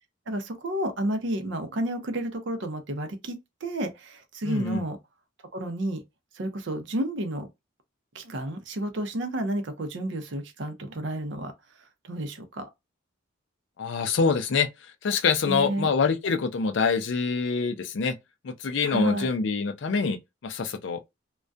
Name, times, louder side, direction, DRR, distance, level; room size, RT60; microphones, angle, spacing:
voice 1, 0.3-5.0 5.5-6.0 6.3-7.5 8.1-11.5 12.0-12.7 15.5-15.9 18.8-19.3, right 1 dB, 60° right, 0.6 m, -31 dB
voice 2, 4.4-4.8 13.8-14.7 15.0-18.2 18.4-21.0, left 5 dB, 65° left, 0.4 m, -25 dB
2.3 x 2.1 x 2.5 m
head